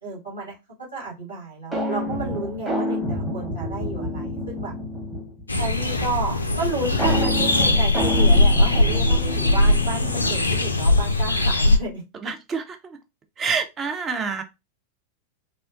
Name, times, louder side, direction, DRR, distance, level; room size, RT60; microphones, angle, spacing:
voice 1, 0.0-4.7 5.6-12.0, right 3 dB, 85° right, 1.5 m, -32 dB
sound 1, 1.7-5.4 7.0-10.6, left 1 dB, 5° right, 0.9 m, -28 dB
sound 2, 5.5-11.8, left 2 dB, 80° left, 0.3 m, -20 dB
voice 2, 12.1-13.0 13.4-14.4, right 5 dB, 25° right, 0.4 m, -27 dB
2.7 x 2.1 x 2.4 m
figure-of-eight pair, 90°, 0 cm